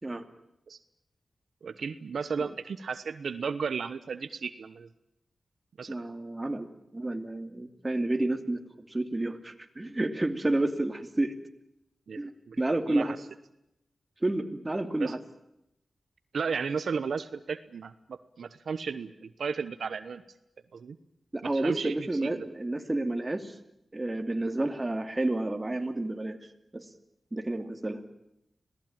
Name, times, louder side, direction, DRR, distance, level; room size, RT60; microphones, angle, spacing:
voice 1, 1.6-4.9 5.8-6.0 12.1-12.2 12.5-12.6 12.9-13.2 15.0-15.1 16.3-20.2 20.7-21.0 21.4-22.0 22.2-22.5, right 5 dB, 85° right, 12 dB, 1.1 m, -34 dB
voice 2, 5.9-11.3 12.2-12.3 12.6-13.2 14.2-15.2 21.3-23.5 23.9-26.4 26.7-26.8 27.3-28.0, right 2 dB, 25° right, 7 dB, 2.6 m, -30 dB
26.5 x 18.0 x 8.9 m, 0.84 s
wide cardioid pair, 75°, 0 cm